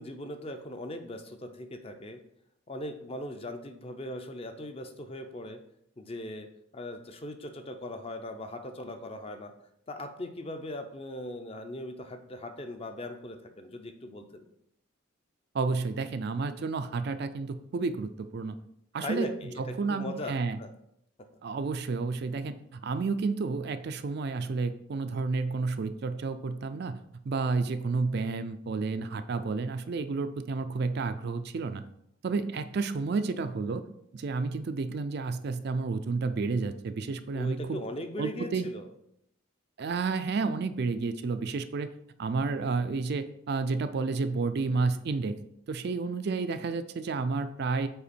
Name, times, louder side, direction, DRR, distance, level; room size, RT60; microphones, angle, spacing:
voice 1, 0.0-2.2 2.7-5.6 6.0-6.5 6.7-9.5 9.9-14.5 19.0-20.7 37.3-38.9, left 1 dB, 25° left, 7 dB, 0.5 m, -39 dB
voice 2, 15.5-18.6 18.9-19.3 19.8-20.6 21.4-27.0 27.3-31.8 32.2-33.8 34.1-37.8 38.2-38.6 39.8-41.9 42.2-45.4 45.7-47.9, right 4 dB, 50° right, 10 dB, 0.3 m, -31 dB
5.6 x 4.4 x 4.2 m, 0.75 s
head